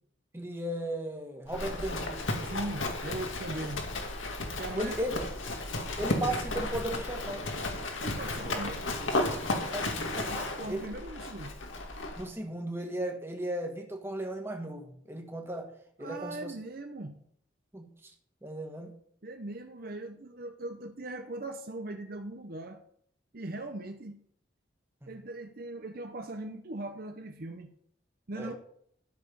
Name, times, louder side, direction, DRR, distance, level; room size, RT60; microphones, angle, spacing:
voice 1, 0.3-2.2 4.7-5.2 6.0-7.6 9.1-10.3 10.7-10.9 12.2-15.7 16.0-16.5 17.7-18.1 18.4-18.9 25.0-25.1 28.4-28.5, right 1 dB, 10° right, 1.6 m, -36 dB
Livestock farm animals working animals, 1.5-12.3, left 2 dB, 80° left, 2.2 m, -34 dB
voice 2, 2.4-3.8 4.6-5.0 8.0-8.9 10.3-11.5 16.0-17.2 19.2-22.8 23.3-24.2 25.1-27.7 28.3-28.6, right 2 dB, 50° right, 0.8 m, -39 dB
13.0 x 7.2 x 5.5 m
head